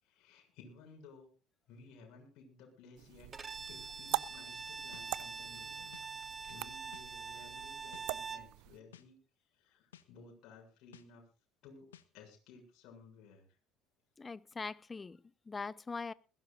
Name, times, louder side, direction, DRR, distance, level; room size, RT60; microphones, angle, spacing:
voice 1, 0.0-1.3 1.7-3.3 3.7-6.0 6.4-9.2 9.5-11.2 11.6-11.9 12.1-13.4, left 4 dB, 60° left, 7.1 m, -57 dB
sound 1, 3.0-8.8, right 19 dB, 65° right, 0.6 m, -44 dB
Bowed string instrument, 3.3-8.5, right 5 dB, 30° right, 1.2 m, -44 dB
sound 2, 4.9-5.1 5.9-6.1 6.9-7.1 7.9-8.1 8.9-9.1 9.9-10.1 10.9-11.1 11.9-12.1, left 11 dB, 85° left, 1.1 m, -56 dB
voice 2, 14.2-16.1, left 4 dB, 25° left, 0.8 m, -42 dB
21.0 x 16.5 x 2.6 m
hypercardioid pair, 65°, 0 cm